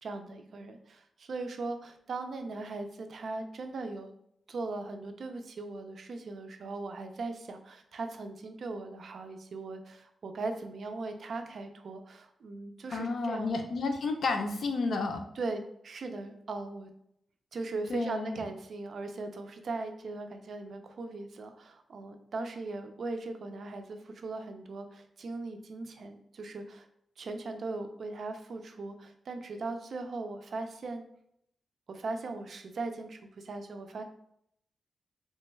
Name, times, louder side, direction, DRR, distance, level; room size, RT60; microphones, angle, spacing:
voice 1, 0.0-4.1 4.5-13.5 15.4-16.9 17.5-26.9 27.2-31.0 31.9-34.0, right 3 dB, 60° right, 6 dB, 0.4 m, -39 dB
voice 2, 12.9-15.3 17.9-18.4, left 3 dB, 65° left, 5 dB, 0.5 m, -31 dB
3.3 x 2.2 x 3.1 m, 0.73 s
wide cardioid pair, 125°, 0 cm